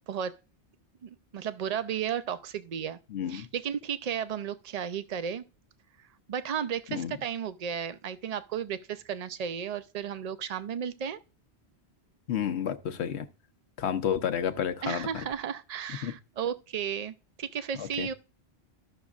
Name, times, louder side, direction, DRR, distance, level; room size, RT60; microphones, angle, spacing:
voice 1, 0.1-0.4 1.0-3.0 3.3-5.4 6.3-11.2 14.8-18.1, right 8 dB, 50° right, 0.5 m, -34 dB
voice 2, 3.1-3.5 6.9-7.1 12.3-13.3 13.8-15.2 16.0-16.1 17.8-18.1, left 8 dB, 80° left, 1.0 m, -31 dB
13.5 x 6.2 x 2.4 m
omnidirectional pair, 1.1 m